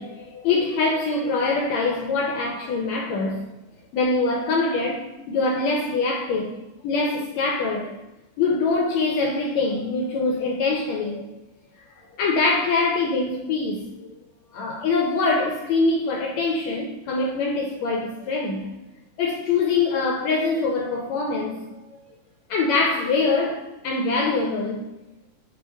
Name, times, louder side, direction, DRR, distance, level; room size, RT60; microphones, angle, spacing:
voice 1, 0.0-3.4 3.9-6.5 6.8-8.0 8.4-11.2 12.2-14.1 14.5-18.7 19.2-21.8 22.5-24.8, left 3 dB, 75° left, 1.7 m, -24 dB
8.4 x 5.0 x 3.4 m
omnidirectional pair, 3.6 m